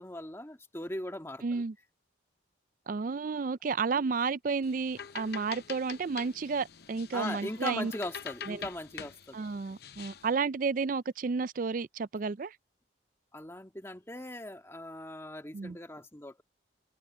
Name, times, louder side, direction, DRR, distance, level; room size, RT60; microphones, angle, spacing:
voice 1, 0.0-1.6 7.1-9.4 13.3-16.4, left 1 dB, 15° left, 1.7 m, -39 dB
voice 2, 1.4-1.8 2.9-7.9 8.4-8.7 9.3-12.6 15.5-15.8, right 4 dB, 45° right, 0.4 m, -32 dB
sound 1, 4.6-10.3, left 8 dB, 55° left, 0.7 m, -45 dB
head